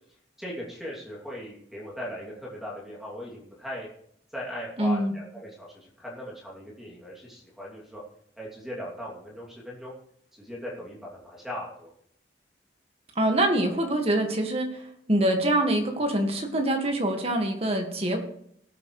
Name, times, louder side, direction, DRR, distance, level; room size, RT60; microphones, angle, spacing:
voice 1, 0.4-3.9 4.3-8.0 8.4-9.9 10.3-11.9, left 1 dB, ahead, -5 dB, 2.8 m, -39 dB
voice 2, 4.8-5.1 13.2-14.8 15.1-18.2, right 1 dB, 30° right, 3 dB, 1.8 m, -25 dB
19.0 x 8.4 x 3.2 m, 0.69 s
head